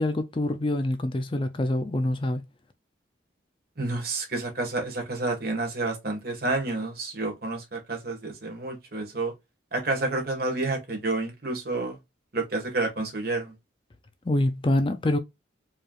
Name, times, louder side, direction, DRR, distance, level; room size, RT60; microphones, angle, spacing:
voice 1, 0.0-2.4 14.3-15.2, left 1 dB, 25° left, 0.4 m, -25 dB
voice 2, 3.8-9.3 9.7-12.0 12.3-13.5, right 2 dB, 50° right, 1.7 m, -29 dB
4.7 x 3.2 x 2.4 m
head